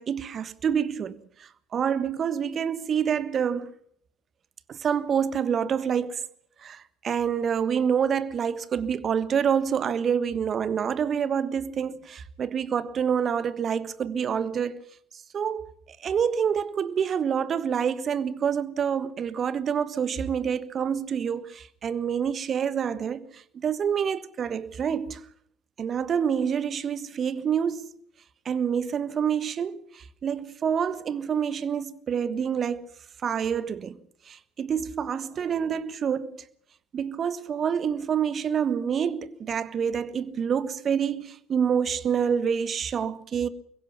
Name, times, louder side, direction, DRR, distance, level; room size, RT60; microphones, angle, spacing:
voice 1, 0.0-3.7 4.7-6.2 6.6-14.8 15.3-15.7 16.0-25.2 25.8-28.0 28.4-32.9 33.2-34.0 34.3-36.4 36.9-43.5, right 7 dB, 40° right, 1.4 m, -27 dB
24.5 x 22.5 x 5.8 m
hypercardioid pair, 60°, 0 cm